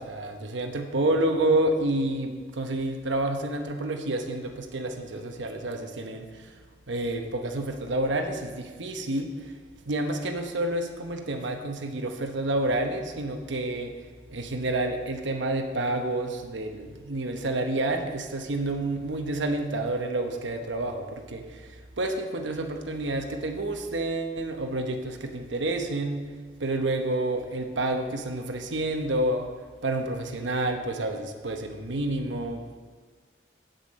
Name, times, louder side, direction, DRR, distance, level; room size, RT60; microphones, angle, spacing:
voice 1, 0.0-6.3 6.9-9.3 9.9-13.9 14.3-21.4 22.0-26.2 26.6-29.5 29.8-32.8, right 1 dB, 80° right, 4 dB, 1.0 m, -29 dB
8.0 x 8.0 x 5.3 m, 1.5 s
head